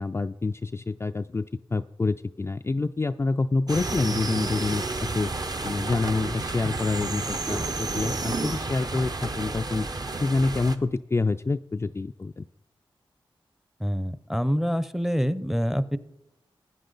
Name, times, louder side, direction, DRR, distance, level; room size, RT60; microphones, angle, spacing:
voice 1, 0.0-5.3 5.6-9.9 10.2-12.5, left 3 dB, 25° left, 8 dB, 0.3 m, -27 dB
sound 1, 3.7-10.8, right 3 dB, 45° right, 0.9 m, -31 dB
sound 2, 3.8-10.4, right 2 dB, 80° right, 3.8 m, -50 dB
voice 2, 13.8-16.0, equal, 5° right, 15 dB, 0.6 m, -26 dB
15.0 x 9.5 x 4.0 m, 0.85 s
cardioid pair, 50°, 10 cm